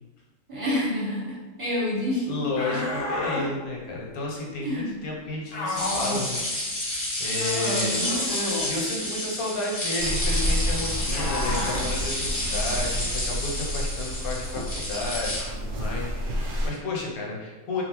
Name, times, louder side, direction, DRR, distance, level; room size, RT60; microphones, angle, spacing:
voice 1, 0.5-2.3 4.6-4.9 7.4-7.9, left 1 dB, 25° right, -9 dB, 1.0 m, -28 dB
voice 2, 2.3-6.4 6.8-7.9 8.7-17.8, left 2 dB, 85° left, -2 dB, 1.1 m, -32 dB
sound 1, 2.6-3.5 5.5-6.3 7.9-8.7 11.1-11.9, left 1 dB, 65° left, 0.9 m, -30 dB
sound 2, 5.7-15.4, left 1 dB, 35° left, 0.5 m, -30 dB
sound 3, 10.0-16.7, equal, 65° right, 0.9 m, -30 dB
2.7 x 2.3 x 2.9 m, 1.2 s
omnidirectional pair, 1.5 m